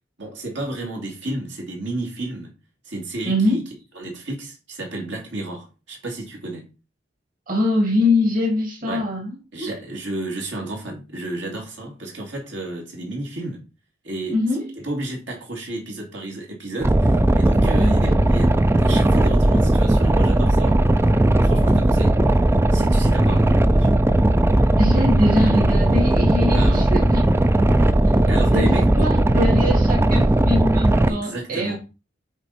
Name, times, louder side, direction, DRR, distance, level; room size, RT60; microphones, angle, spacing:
voice 1, 0.2-2.5 2.8-3.6 3.9-6.7 8.8-9.1 9.5-13.6 14.0-14.4 14.8-20.9 21.4-22.2 22.7-23.9 26.5-26.9 28.3-28.9 31.1-31.8, right 2 dB, 75° right, 2.7 m, -32 dB
voice 2, 3.3-3.6 7.5-9.7 14.3-14.6 17.6-18.2 24.8-27.2 28.5-31.8, left 1 dB, 50° right, 2.5 m, -23 dB
Boat Water vehicle, 16.8-31.1, right 1 dB, 15° right, 0.4 m, -17 dB
8.0 x 4.2 x 4.3 m
head